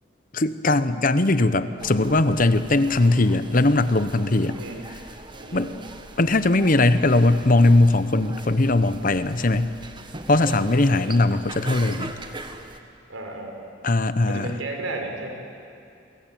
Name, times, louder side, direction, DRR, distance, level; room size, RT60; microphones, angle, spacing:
voice 1, 0.3-4.6 5.5-5.7 6.2-9.7 10.3-12.1 13.8-14.6, left 2 dB, 45° left, 12 dB, 0.9 m, -20 dB
sound 1, 1.8-12.8, right 2 dB, 25° right, 1.4 m, -40 dB
voice 2, 4.6-4.9 5.4-5.7 10.6-11.1 13.1-13.6 14.3-15.3, right 2 dB, 90° right, 2 dB, 5.2 m, -34 dB
28.5 x 21.5 x 9.2 m, 2.5 s
head